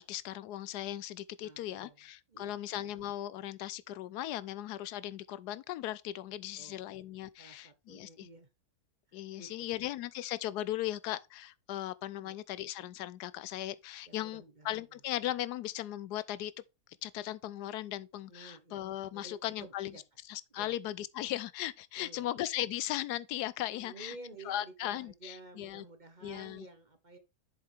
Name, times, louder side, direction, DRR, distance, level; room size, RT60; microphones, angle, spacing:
voice 1, 0.0-8.3 9.1-16.5 17.0-20.0 20.3-24.2 24.4-25.8 26.2-26.7, left 13 dB, 90° left, 1.1 m, -38 dB
voice 2, 1.4-2.0 2.3-2.6 6.6-6.8 7.4-8.5 9.1-9.5 12.2-12.4 14.1-14.8 18.3-18.8 19.1-20.0 20.5-20.7 22.0-22.3 23.7-27.2, right 2 dB, 35° right, 1.0 m, -52 dB
7.3 x 7.3 x 3.4 m
omnidirectional pair, 1.7 m